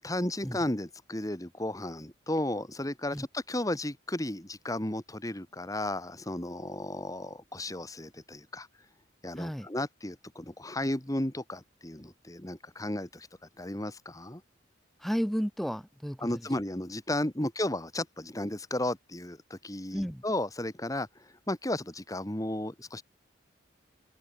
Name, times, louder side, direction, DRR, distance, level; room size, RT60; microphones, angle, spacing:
voice 1, 0.0-8.7 9.2-13.3 13.6-14.4 16.2-21.1 21.5-23.0, left 1 dB, 20° left, 1.8 m, -34 dB
voice 2, 9.4-9.7 15.0-16.5 19.9-20.2, equal, ahead, 4.9 m, -33 dB
open air
head